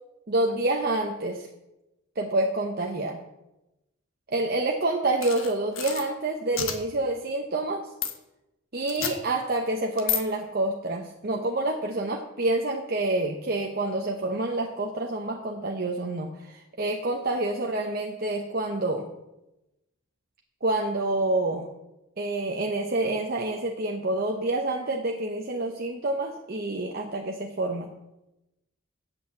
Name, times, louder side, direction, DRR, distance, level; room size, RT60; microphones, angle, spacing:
voice 1, 0.3-1.5 2.2-3.2 4.3-7.9 8.7-19.1 20.6-21.7 22.2-27.9, right 2 dB, 45° right, 2 dB, 0.8 m, -28 dB
sound 1, 5.2-6.0 6.5-6.8 8.0-8.1 8.9-9.1 10.0-10.2, left 8 dB, 80° left, 1.3 m, -29 dB
8.6 x 7.9 x 7.5 m, 0.95 s
head